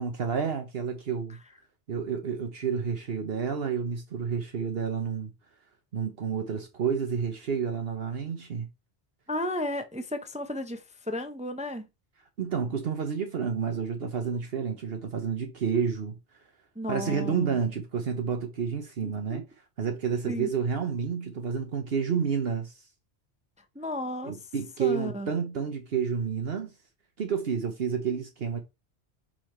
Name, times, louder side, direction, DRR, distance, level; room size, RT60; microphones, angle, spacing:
voice 1, 0.0-1.4 1.9-5.3 5.9-8.7 12.4-16.2 16.9-19.4 19.8-22.7 24.2-26.7 27.2-28.6, right 6 dB, 65° right, 1.1 m, -30 dB
voice 2, 9.3-11.9 16.8-17.6 19.0-19.4 20.3-20.5 23.7-24.5 24.8-25.3, left 1 dB, 10° right, 0.5 m, -34 dB
5.6 x 5.1 x 4.3 m
omnidirectional pair, 1.1 m